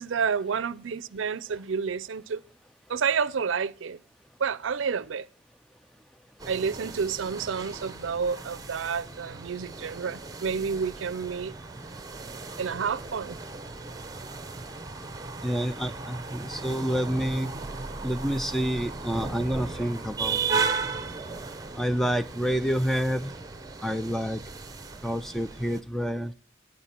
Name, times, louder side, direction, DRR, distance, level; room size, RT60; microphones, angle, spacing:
voice 1, 0.0-2.4 2.9-4.0 4.4-5.3 6.5-11.5 12.6-13.4, right 6 dB, 80° right, 0.5 m, -29 dB
sound 1, 6.4-25.8, right 4 dB, 20° right, 0.8 m, -36 dB
voice 2, 15.4-17.5 18.0-20.9 21.8-23.3 23.8-24.4 25.0-26.3, equal, ahead, 0.4 m, -28 dB
11.0 x 8.7 x 4.4 m
head